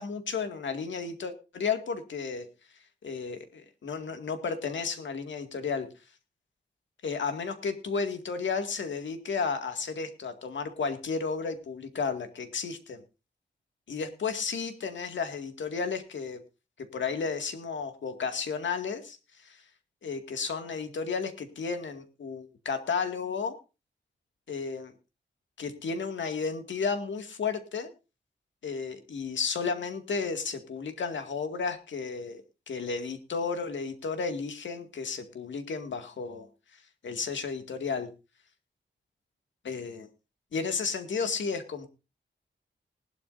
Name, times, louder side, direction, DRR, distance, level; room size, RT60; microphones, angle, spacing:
voice 1, 0.0-2.5 3.0-5.9 7.0-13.0 13.9-16.4 16.9-19.2 19.4-19.6 20.0-23.6 24.5-24.9 25.6-27.9 28.6-36.5 37.0-38.1 39.6-40.1 40.5-41.9, left 5 dB, 85° left, 7 dB, 2.2 m, -33 dB
20.0 x 12.0 x 2.6 m, 0.29 s
wide cardioid pair, 170°, 19 cm